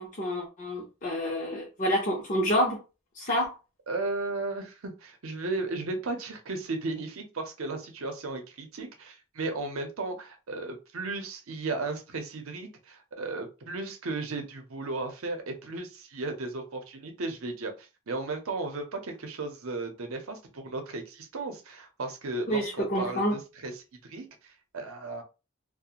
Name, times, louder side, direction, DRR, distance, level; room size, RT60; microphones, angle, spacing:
voice 1, 0.0-2.8 3.2-3.5 22.5-23.4, equal, 35° left, 0.6 m, -28 dB
voice 2, 3.9-25.2, right 3 dB, 75° right, 0.6 m, -35 dB
2.4 x 2.1 x 2.9 m
head